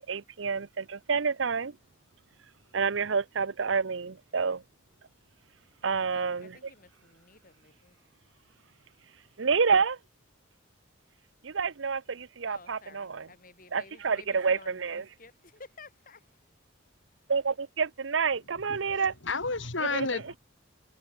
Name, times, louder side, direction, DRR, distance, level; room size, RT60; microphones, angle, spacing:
voice 1, 0.1-1.7 2.7-4.6 5.8-6.5 9.4-10.0 11.4-13.3 13.7-15.0 17.3-19.1 19.9-20.1, right 5 dB, 70° right, 0.7 m, -28 dB
voice 2, 6.0-9.3 12.4-16.4, left 4 dB, 45° left, 3.7 m, -54 dB
voice 3, 18.7-20.4, left 4 dB, 70° left, 2.5 m, -32 dB
head